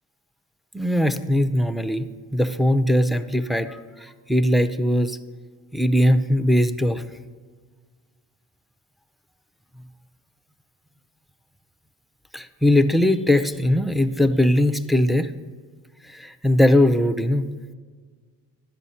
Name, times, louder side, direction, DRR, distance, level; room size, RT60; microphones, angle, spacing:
voice 1, 0.7-5.2 5.7-7.0 12.3-15.3 16.1-17.5, left 1 dB, ahead, 9 dB, 0.5 m, -20 dB
11.0 x 6.5 x 4.2 m, 1.5 s
hypercardioid pair, 45°, 47 cm